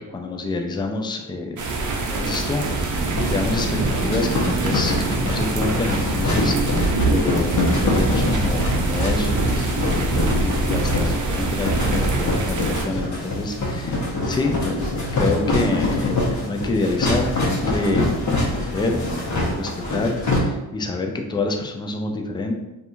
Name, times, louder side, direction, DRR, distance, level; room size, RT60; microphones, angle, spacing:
voice 1, 0.1-1.6 2.1-14.8 15.1-19.1 19.6-22.6, left 2 dB, 10° left, 3 dB, 0.3 m, -27 dB
sound 1, 1.6-12.8, right 2 dB, 40° right, 0.6 m, -24 dB
sound 2, 2.9-20.4, left 2 dB, 40° left, 0.9 m, -25 dB
2.6 x 2.4 x 2.5 m, 0.97 s
supercardioid pair, 45°, 46 cm